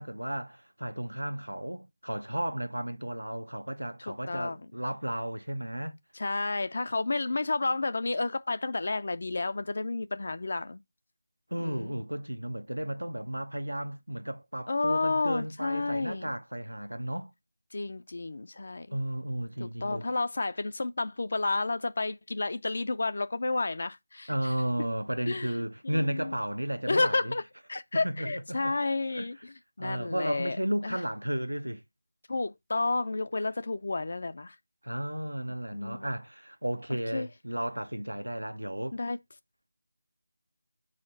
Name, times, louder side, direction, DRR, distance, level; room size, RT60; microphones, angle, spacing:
voice 1, 0.0-6.0 11.5-17.3 18.9-20.1 24.3-27.3 28.0-28.7 29.1-29.3 29.8-31.8 34.8-39.0, right 1 dB, 80° right, 0.7 m, -34 dB
voice 2, 4.1-4.6 6.1-10.8 11.6-12.0 14.7-16.3 17.7-19.0 19.6-24.5 25.3-25.5 25.8-26.3 26.9-27.4 27.7-30.6 30.8-31.0 32.3-34.6 35.7-36.0 37.1-37.3 38.9-39.2, left 3 dB, 45° left, 0.4 m, -31 dB
6.3 x 4.4 x 4.0 m
figure-of-eight pair, 160°, 0 cm